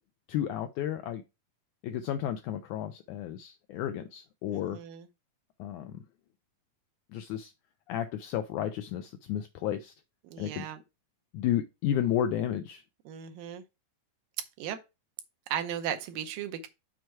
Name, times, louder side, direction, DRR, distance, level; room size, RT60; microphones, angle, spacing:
voice 1, 0.3-1.2 1.8-4.8 5.6-6.0 7.1-7.5 7.9-9.9 10.4-10.7 11.3-12.8, left 10 dB, 85° left, 1.7 m, -32 dB
voice 2, 4.5-5.1 10.3-10.8 13.1-13.6 14.6-14.8 15.5-16.7, right 9 dB, 80° right, 2.3 m, -36 dB
6.4 x 4.5 x 4.5 m
omnidirectional pair, 4.0 m